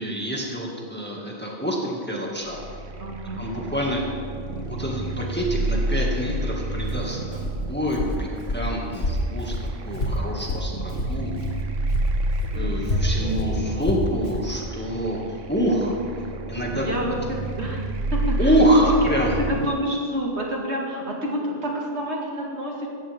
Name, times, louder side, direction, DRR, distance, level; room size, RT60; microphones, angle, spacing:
voice 1, 0.0-2.6 3.4-4.0 4.5-7.4 7.7-8.3 8.5-9.5 9.8-11.3 12.5-15.9 16.5-16.9 18.4-19.8, equal, 10° left, -2 dB, 2.0 m, -25 dB
sound 1, 2.4-19.8, right 1 dB, 85° right, 1.3 m, -30 dB
voice 2, 3.0-3.5 12.4-13.3 13.6-13.8 16.7-18.9 19.4-22.9, equal, 65° right, -1 dB, 2.3 m, -29 dB
Walk footsteps, 6.8-11.6 11.9-14.5, left 1 dB, 55° left, 1.6 m, -28 dB
17.5 x 14.0 x 3.6 m, 2.3 s
omnidirectional pair, 1.2 m